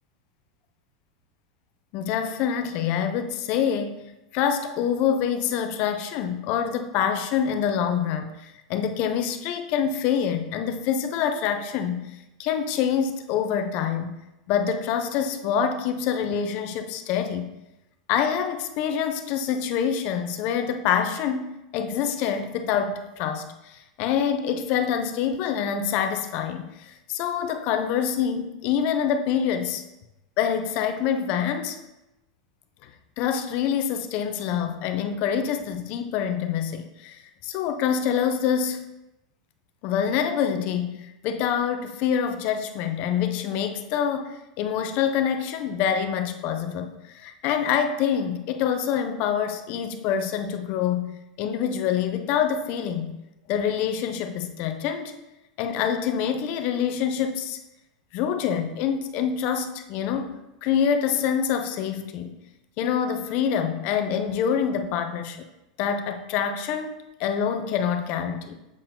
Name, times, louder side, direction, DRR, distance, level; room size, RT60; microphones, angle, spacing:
voice 1, 1.9-4.0 4.3-8.4 8.7-12.1 12.4-14.2 14.5-17.5 18.1-29.8 30.4-31.8 33.2-38.9 39.8-53.1 53.5-55.1 55.6-57.6 58.1-60.3 60.6-62.4 62.8-65.4 65.8-68.6, left 8 dB, 50° left, 7 dB, 0.7 m, -26 dB
7.4 x 4.4 x 3.8 m, 0.95 s
supercardioid pair, 135°, 3 cm